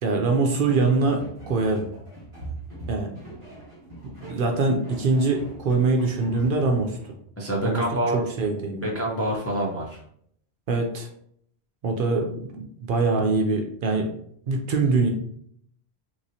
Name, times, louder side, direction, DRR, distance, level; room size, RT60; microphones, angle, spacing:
voice 1, 0.0-1.9 2.9-3.2 4.0-7.0 7.6-7.8 8.1-8.8 10.7-11.1 11.8-14.1 14.5-15.1, right 3 dB, 60° right, 3 dB, 0.7 m, -23 dB
sound 1, 0.6-7.2, right 2 dB, 30° right, 1.1 m, -42 dB
voice 2, 7.4-8.2 8.8-10.0, right 1 dB, 20° left, -3 dB, 0.5 m, -26 dB
3.2 x 2.9 x 2.7 m, 0.65 s
omnidirectional pair, 1.1 m